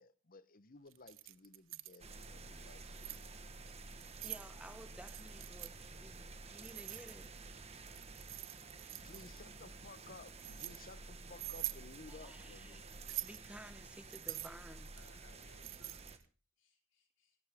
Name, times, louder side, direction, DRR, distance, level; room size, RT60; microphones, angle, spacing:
voice 1, 0.0-3.5 9.0-12.8, left 3 dB, 45° left, 1.0 m, -57 dB
Keys jangling, 0.9-2.0 2.7-3.3 3.9-4.5 5.0-5.7 6.6-7.4 7.9-9.4 10.0-10.8 11.3-11.8 12.9-13.5 14.1-16.2, right 17 dB, 80° right, 0.7 m, -45 dB
sound 1, 2.0-16.2, right 3 dB, 35° right, 1.5 m, -52 dB
voice 2, 4.2-7.4 9.1-9.2 12.1-12.9 13.2-14.9, right 1 dB, 5° right, 1.0 m, -54 dB
voice 3, 8.7-9.5 14.0-14.1 15.0-16.0 16.6-17.4, left 3 dB, 75° left, 4.3 m, -68 dB
18.0 x 17.5 x 3.7 m
head